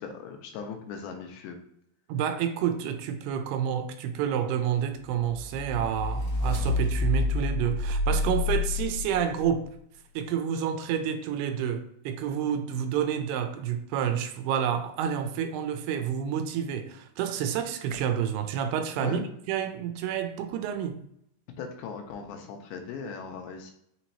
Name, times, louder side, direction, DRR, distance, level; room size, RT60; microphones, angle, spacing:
voice 1, 0.0-1.6 19.0-19.3 21.6-23.7, left 5 dB, 85° left, 2.5 m, -38 dB
voice 2, 2.1-9.7 10.2-21.0, right 9 dB, 90° right, 2.6 m, -29 dB
sound 1, 5.3-9.5, left 2 dB, 55° left, 2.2 m, -28 dB
6.4 x 2.9 x 2.8 m
omnidirectional pair, 4.5 m